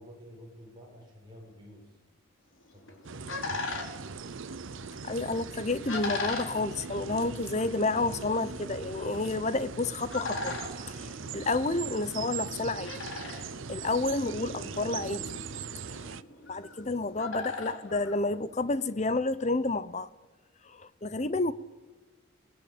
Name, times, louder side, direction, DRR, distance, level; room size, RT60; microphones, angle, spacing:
voice 1, 0.0-2.0 2.7-3.4 21.1-21.4, equal, 20° right, -2 dB, 7.6 m, -51 dB
sound 1, 2.6-18.9, left 3 dB, 70° left, 4.2 m, -41 dB
sound 2, 3.0-16.2, right 5 dB, 70° right, 0.7 m, -40 dB
voice 2, 5.0-10.6 10.9-12.9 13.7-15.4 15.9-16.1 16.5-20.1 20.7-21.5, left 2 dB, 35° left, 15 dB, 0.8 m, -30 dB
28.0 x 19.5 x 8.9 m, 1.3 s
head